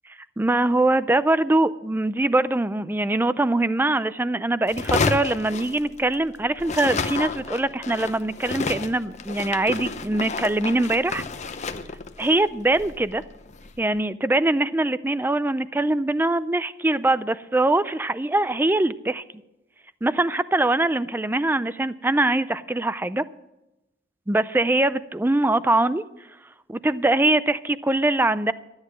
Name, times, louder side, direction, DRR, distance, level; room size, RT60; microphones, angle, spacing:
voice 1, 0.4-11.2 12.2-13.2 13.8-19.2 20.0-23.2 24.3-26.0 26.7-28.5, right 2 dB, 10° right, 15 dB, 0.4 m, -22 dB
sound 1, 4.7-6.3 6.6-13.8, left 4 dB, 40° left, 0.8 m, -30 dB
13.0 x 9.6 x 6.4 m, 0.94 s
head